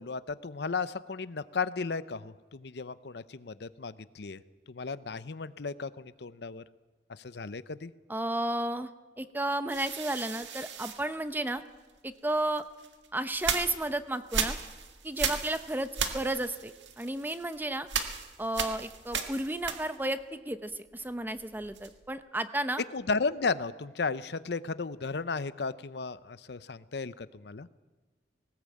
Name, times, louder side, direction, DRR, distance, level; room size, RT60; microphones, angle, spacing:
voice 1, 0.0-4.4 4.7-6.6 7.1-7.9 22.9-27.7, left 4 dB, 65° left, 15 dB, 0.7 m, -34 dB
voice 2, 8.1-8.9 9.2-11.6 12.0-12.6 13.1-14.6 15.0-17.9 18.4-22.8, right 1 dB, 10° right, 11 dB, 0.8 m, -33 dB
sound 1, 9.7-11.9 12.6-20.2 20.5-22.1, right 6 dB, 80° right, 1.8 m, -36 dB
19.0 x 18.5 x 8.5 m, 1.3 s
head